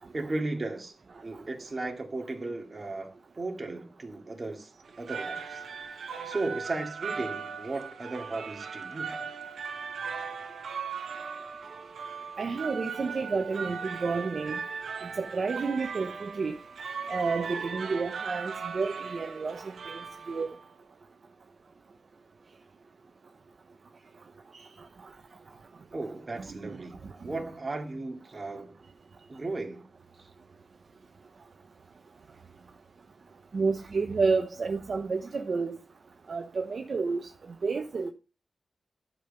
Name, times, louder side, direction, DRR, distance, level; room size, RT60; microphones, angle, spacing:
voice 1, 0.1-4.7 5.0-5.6 5.9-9.3 25.9-28.8 29.3-29.8 30.2-30.3, right 2 dB, 35° right, 2.5 m, -36 dB
sound 1, 4.9-20.7, right 5 dB, 90° right, 1.2 m, -38 dB
voice 2, 12.4-14.6 15.0-16.6 17.1-20.6 24.5-25.1 26.4-27.3 33.5-35.8 36.3-37.3 37.6-38.1, right 4 dB, 60° right, 0.8 m, -31 dB
11.5 x 5.4 x 5.5 m
wide cardioid pair, 80°, 0 cm